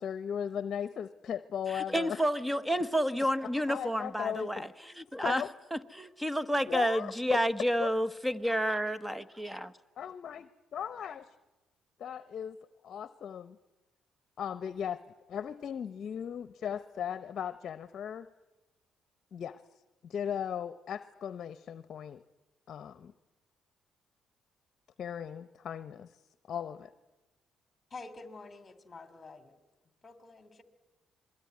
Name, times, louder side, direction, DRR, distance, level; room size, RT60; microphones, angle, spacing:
voice 1, 0.0-2.2 3.7-4.7 5.2-5.5 6.7-7.4 7.8-7.9 10.0-11.3 12.0-12.6 12.8-13.6 14.4-15.0 15.3-18.3 19.3-19.6 20.0-22.2 22.7-23.1 25.0-26.2 26.5-26.9, left 8 dB, 55° left, 13 dB, 0.9 m, -37 dB
voice 2, 1.7-5.4 5.7-9.7, equal, 5° right, 14 dB, 1.1 m, -30 dB
voice 3, 27.9-29.6 30.0-30.6, left 3 dB, 25° left, 10 dB, 3.0 m, -48 dB
27.0 x 22.0 x 9.6 m, 1.1 s
cardioid pair, 95°, 0 cm